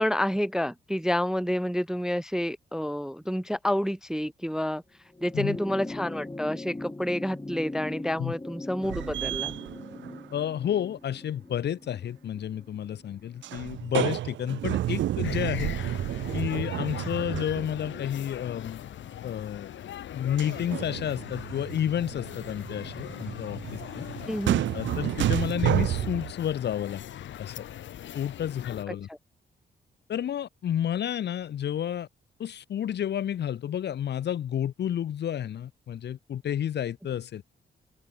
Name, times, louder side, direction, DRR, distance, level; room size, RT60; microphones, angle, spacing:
voice 1, 0.0-4.8 5.2-9.6 24.3-24.7 29.1-29.2, equal, 5° right, 0.3 m, -29 dB
sound 1, 5.1-13.8 15.0-15.1, left 2 dB, 15° left, 4.7 m, -41 dB
sound 2, 8.8-10.4 13.4-18.1 20.4-26.3, right 13 dB, 90° right, 1.0 m, -31 dB
voice 2, 10.3-15.7 16.3-18.8 19.2-19.7 20.1-24.0 24.7-27.0 27.4-27.7 28.1-29.1 30.1-32.1 32.4-37.4, left 10 dB, 65° left, 0.8 m, -31 dB
Manchester Airport Departures, 15.2-28.8, left 11 dB, 85° left, 1.8 m, -41 dB
open air
cardioid pair, 80°, 19 cm